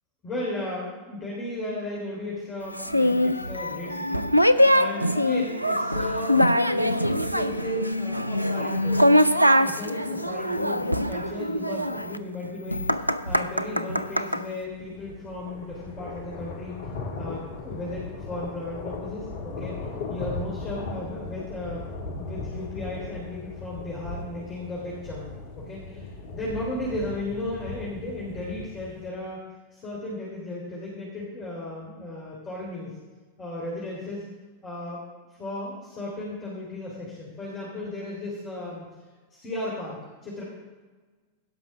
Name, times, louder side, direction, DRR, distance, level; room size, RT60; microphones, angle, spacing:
voice 1, 0.2-4.3 4.7-6.4 6.7-9.1 9.6-16.7 17.2-19.8 20.1-21.8 22.1-29.4 29.7-33.0 33.4-34.2 34.6-35.0 35.3-38.9 39.3-40.4, left 1 dB, 25° left, -4 dB, 3.3 m, -35 dB
sound 1, 2.8-14.4, equal, 90° right, 0.4 m, -23 dB
sound 2, 14.6-29.1, left 3 dB, 55° left, 1.6 m, -37 dB
16.5 x 5.8 x 5.9 m, 1.3 s
figure-of-eight pair, 90°, 0 cm